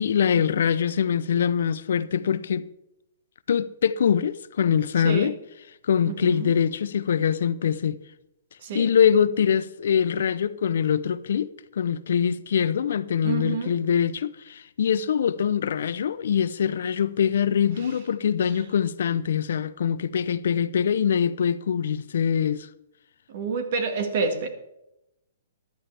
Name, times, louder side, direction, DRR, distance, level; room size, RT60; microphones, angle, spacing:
voice 1, 0.0-2.7 3.5-5.4 5.8-8.0 8.7-22.7, left 8 dB, 70° left, 0.6 m, -23 dB
voice 2, 6.1-6.5 8.6-8.9 13.2-13.8 17.7-17.9 23.3-24.5, right 5 dB, 50° right, 1.8 m, -28 dB
14.0 x 11.5 x 3.4 m
hypercardioid pair, 160°, 0 cm